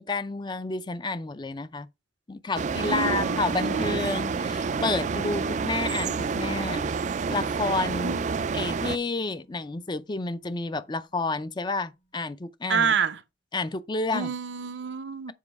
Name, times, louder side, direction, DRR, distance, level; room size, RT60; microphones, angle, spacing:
voice 1, 0.0-1.9 2.3-6.9 7.3-8.1 8.5-12.9 13.5-14.3, left 3 dB, 25° left, 0.5 m, -30 dB
sound 1, 2.5-9.0, right 5 dB, 40° right, 0.4 m, -28 dB
voice 2, 2.8-4.0 8.0-8.6 12.7-13.2 14.1-15.3, right 6 dB, 75° right, 0.7 m, -29 dB
Musical instrument, 10.1-11.0 11.3-11.4, right 2 dB, 45° left, 1.5 m, -48 dB
7.4 x 4.9 x 4.7 m
head